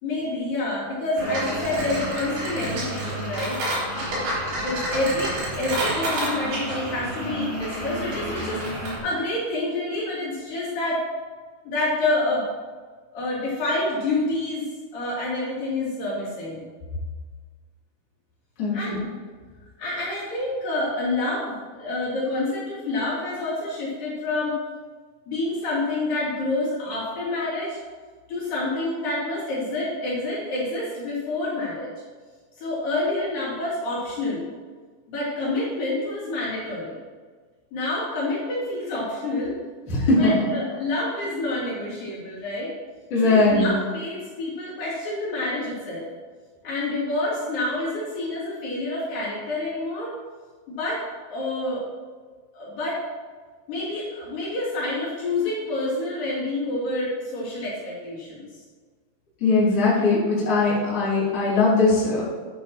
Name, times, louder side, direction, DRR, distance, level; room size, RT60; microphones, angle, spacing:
voice 1, 0.0-3.6 4.6-11.0 11.6-12.4 13.1-14.6 14.9-16.6 18.7-19.0 19.8-24.6 25.3-27.8 28.3-31.9 32.6-34.4 35.1-36.9 37.7-39.5 40.2-42.7 43.2-46.1 46.6-50.1 50.7-51.0 51.3-51.8 52.5-53.0 53.7-58.5, left 2 dB, 55° left, -8 dB, 4.5 m, -28 dB
sound 1, 1.2-9.0, right 1 dB, 65° right, 5.6 m, -29 dB
voice 2, 18.6-19.0 39.9-40.3 43.1-43.7 59.4-62.2, left 3 dB, 35° left, -9 dB, 3.7 m, -20 dB
11.5 x 10.5 x 3.0 m, 1.5 s
omnidirectional pair, 5.2 m